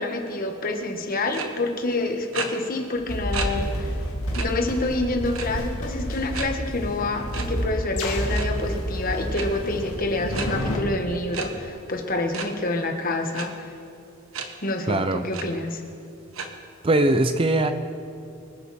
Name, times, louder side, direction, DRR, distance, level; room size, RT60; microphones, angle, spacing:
voice 1, 0.0-4.0 4.3-13.7 14.6-15.8, left 2 dB, 40° left, 3 dB, 1.5 m, -27 dB
sound 1, 1.3-1.5 2.3-2.5 3.3-3.5 3.9-4.0 4.3-4.5 5.3-5.7 6.3-6.5 7.3-7.4 8.2-8.5 9.3-9.5 10.3-10.5 11.3-11.5 12.3-12.5 13.3-13.5 14.3-14.5 14.9-15.0 15.3-15.4 16.3-16.5, right 6 dB, 70° right, 1.3 m, -31 dB
sound 2, 3.0-10.8, equal, 70° left, 2.6 m, -29 dB
voice 2, 14.9-15.3 16.8-17.7, right 2 dB, 25° right, 9 dB, 0.5 m, -21 dB
25.0 x 10.5 x 4.3 m, 2.7 s
head